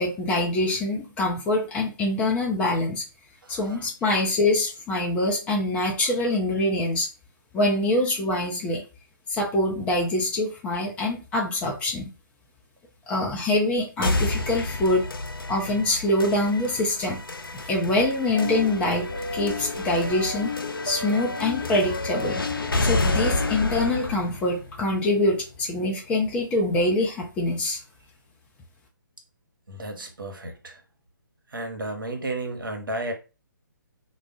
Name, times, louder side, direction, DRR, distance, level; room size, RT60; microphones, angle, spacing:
voice 1, 0.0-3.0 3.5-7.1 7.5-8.8 9.3-12.1 13.1-15.1 15.5-17.2 17.5-20.6 20.8-22.4 22.8-27.8, left 1 dB, 10° left, 0.4 m, -24 dB
voice 2, 3.4-3.9 29.7-30.8 31.5-33.1, right 2 dB, 70° right, 0.9 m, -33 dB
sound 1, 14.0-26.0, left 2 dB, 90° left, 0.4 m, -30 dB
sound 2, 18.3-24.1, left 3 dB, 50° left, 0.7 m, -33 dB
2.3 x 2.0 x 3.5 m
figure-of-eight pair, 140°, 11 cm